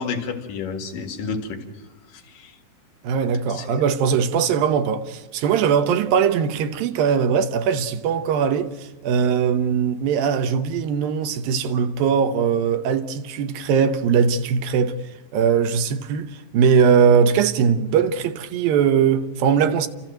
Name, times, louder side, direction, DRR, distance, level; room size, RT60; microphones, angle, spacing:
voice 1, 0.0-1.6 2.3-2.5 3.5-3.8, left 5 dB, 60° left, 3.3 m, -30 dB
voice 2, 3.0-15.0 15.3-19.9, right 7 dB, 70° right, 2.4 m, -20 dB
29.0 x 14.0 x 9.1 m
omnidirectional pair, 4.9 m